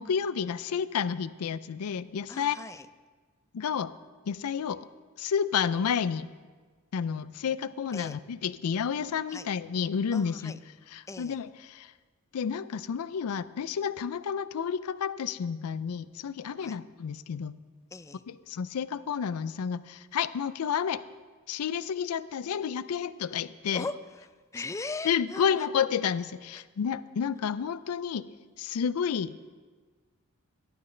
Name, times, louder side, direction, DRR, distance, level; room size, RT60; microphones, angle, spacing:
voice 1, 0.0-2.6 3.5-3.9 4.3-4.9 5.2-6.3 6.9-10.6 10.9-11.9 12.3-17.5 18.3-21.0 21.5-23.8 25.0-28.3 28.6-29.3, left 7 dB, 85° left, 16 dB, 0.4 m, -30 dB
voice 2, 2.3-2.9 7.9-8.2 9.3-9.5 10.1-10.6 11.1-11.4 16.6-16.8 17.9-18.2 23.7-24.3 24.5-25.7 26.5-26.6, left 3 dB, 15° left, 12 dB, 0.3 m, -39 dB
13.0 x 11.5 x 3.3 m, 1.4 s
head